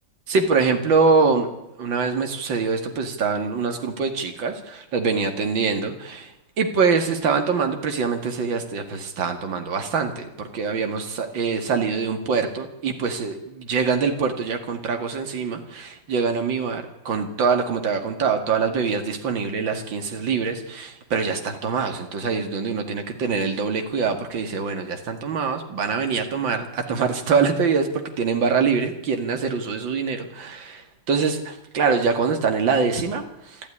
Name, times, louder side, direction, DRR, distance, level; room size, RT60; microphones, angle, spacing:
voice 1, 0.3-1.5 1.8-6.3 6.6-30.8 31.1-33.6, right 5 dB, 80° right, 5 dB, 2.7 m, -24 dB
26.5 x 13.5 x 10.0 m, 0.90 s
omnidirectional pair, 2.1 m